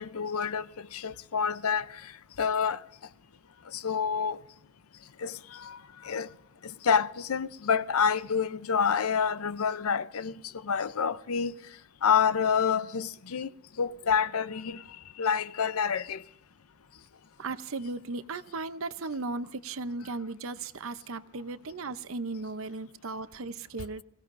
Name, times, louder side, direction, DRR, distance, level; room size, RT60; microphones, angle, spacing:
voice 1, 0.0-2.1 2.4-2.8 3.7-4.4 5.2-6.3 6.6-11.6 12.0-13.5 13.8-14.8 15.2-16.2, left 6 dB, 75° left, 0.6 m, -28 dB
voice 2, 17.4-24.0, right 3 dB, 65° right, 0.7 m, -36 dB
25.0 x 16.5 x 2.6 m
head